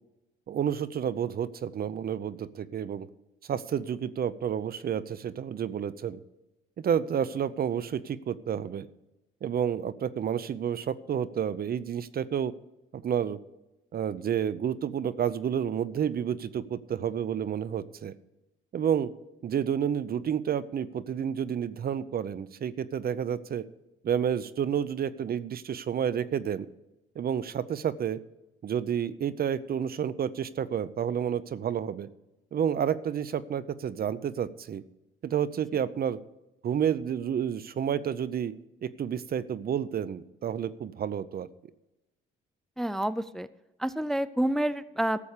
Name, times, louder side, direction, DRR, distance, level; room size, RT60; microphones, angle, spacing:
voice 1, 0.5-3.1 3.4-6.2 6.8-8.9 9.4-12.5 12.9-13.4 13.9-18.1 18.7-19.1 19.4-23.6 24.0-26.7 27.2-28.2 28.6-32.1 32.5-34.8 35.2-36.2 36.6-38.5 38.8-41.5, right 8 dB, 50° right, 17 dB, 0.6 m, -30 dB
voice 2, 42.8-43.5 43.8-45.2, right 1 dB, ahead, 15 dB, 0.4 m, -28 dB
13.0 x 7.0 x 6.6 m, 0.98 s
cardioid pair, 90°, 20 cm